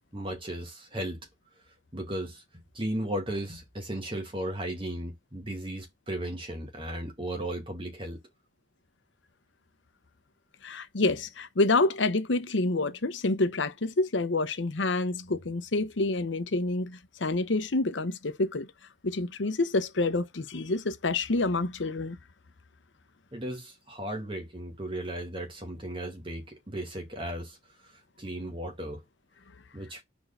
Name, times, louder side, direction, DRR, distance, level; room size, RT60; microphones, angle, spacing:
voice 1, 0.1-1.2 1.9-2.4 2.7-8.2 23.3-27.6 27.9-29.0 29.7-30.0, right 1 dB, 30° right, 2.2 m, -35 dB
voice 2, 10.6-18.7 19.0-22.2, left 2 dB, 85° left, 0.9 m, -28 dB
4.6 x 4.4 x 5.4 m
head